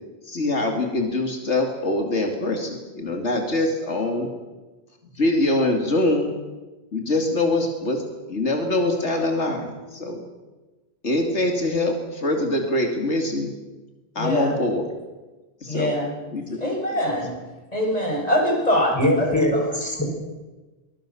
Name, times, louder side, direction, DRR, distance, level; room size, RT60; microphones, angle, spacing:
voice 1, 0.3-4.3 5.1-6.3 6.9-8.0 8.3-10.2 11.0-13.5 14.1-14.9 15.6-16.0 16.3-16.6, left 2 dB, 80° left, 3 dB, 2.9 m, -24 dB
voice 2, 14.2-14.6 15.7-16.1 16.6-17.3 17.7-19.7, equal, 35° left, -1 dB, 6.9 m, -23 dB
voice 3, 18.9-20.0, left 1 dB, 15° left, 1 dB, 5.8 m, -21 dB
24.0 x 21.0 x 7.1 m, 1.2 s
omnidirectional pair, 1.2 m